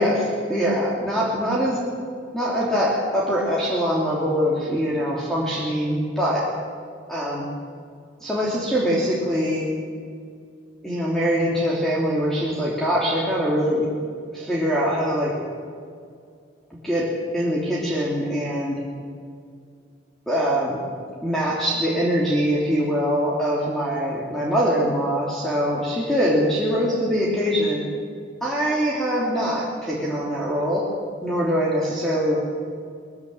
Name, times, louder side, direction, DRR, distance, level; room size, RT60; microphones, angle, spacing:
voice 1, 0.0-1.8 2.3-6.5 7.1-7.5 8.2-9.7 10.8-13.9 14.3-15.3 16.8-18.8 20.3-20.8 21.2-27.8 28.4-30.9 31.2-32.4, equal, ahead, -6 dB, 3.1 m, -23 dB
20.5 x 15.5 x 9.2 m, 2.2 s
head